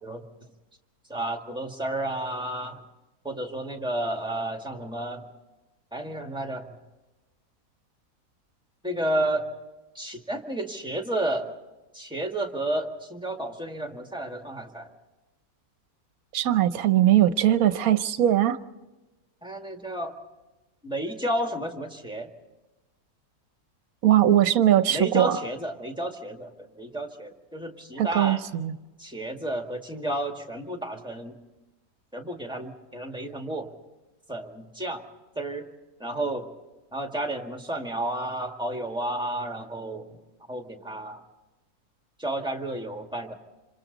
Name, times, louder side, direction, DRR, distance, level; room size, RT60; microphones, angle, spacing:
voice 1, 1.1-2.8 3.2-5.3 5.9-6.7 8.8-9.5 9.9-11.5 11.9-14.9 19.4-20.1 20.8-22.3 24.9-28.4 29.0-31.4 32.1-33.7 34.3-35.0 35.4-35.7 36.0-36.5 36.9-40.1 40.5-41.2 42.2-43.3, right 1 dB, 5° right, 3 dB, 1.8 m, -31 dB
voice 2, 16.3-18.6 24.0-25.3 28.0-28.7, right 12 dB, 65° right, 12 dB, 1.2 m, -20 dB
27.0 x 26.5 x 4.0 m, 1.1 s
omnidirectional pair, 1.7 m